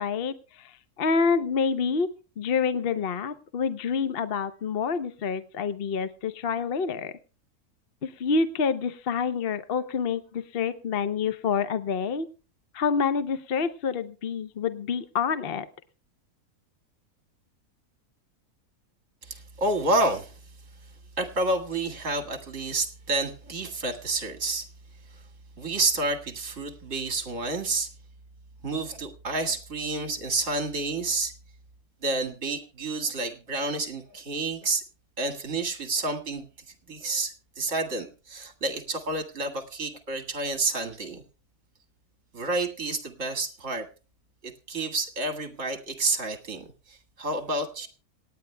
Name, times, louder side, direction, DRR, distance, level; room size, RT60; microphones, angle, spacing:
voice 1, 0.0-2.1 2.4-7.1 8.0-12.3 12.7-15.7, left 5 dB, 50° left, 12 dB, 0.8 m, -27 dB
voice 2, 19.2-20.4 21.2-24.7 25.1-25.2 25.6-27.9 28.6-31.3 32.0-34.8 35.2-36.5 36.9-41.2 42.3-43.9 44.4-47.9, right 2 dB, 55° right, 5 dB, 2.2 m, -29 dB
26.5 x 9.7 x 2.2 m, 0.34 s
omnidirectional pair, 1.6 m